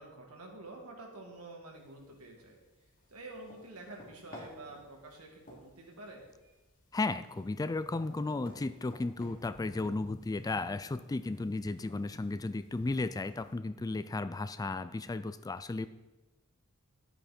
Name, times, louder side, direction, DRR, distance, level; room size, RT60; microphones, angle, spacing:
voice 1, 0.0-2.6 3.1-6.3, right 2 dB, 85° right, 0 dB, 2.4 m, -48 dB
sound 1, 1.7-13.5, left 1 dB, 40° left, 3.1 m, -57 dB
voice 2, 6.9-15.9, left 3 dB, 15° left, 14 dB, 0.3 m, -34 dB
11.5 x 8.7 x 4.3 m, 1.1 s
head